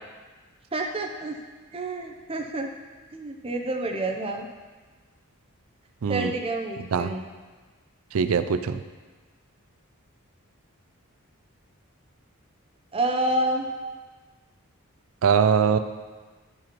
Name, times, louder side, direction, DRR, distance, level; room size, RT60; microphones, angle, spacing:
voice 1, 0.7-1.4 1.7-2.7 3.1-4.5 6.1-7.3 12.9-13.7, right 2 dB, 25° right, 3 dB, 0.6 m, -28 dB
voice 2, 6.0-6.3 6.9-7.1 8.1-8.8 15.2-15.8, right 6 dB, 65° right, 10 dB, 0.4 m, -22 dB
12.0 x 4.8 x 3.0 m, 1.4 s
head